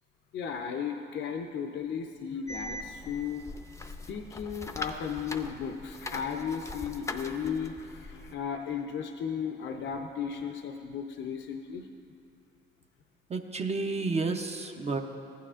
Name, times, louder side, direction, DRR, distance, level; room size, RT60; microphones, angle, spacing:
voice 1, 0.3-3.4 4.1-7.7 8.0-11.8, left 7 dB, 65° left, 4 dB, 0.6 m, -35 dB
sound 1, 2.5-8.3, left 2 dB, 15° left, 0.5 m, -41 dB
voice 2, 13.3-15.0, right 3 dB, 35° right, 4 dB, 0.6 m, -31 dB
14.5 x 9.3 x 2.5 m, 2.6 s
cardioid pair, 90°, 20 cm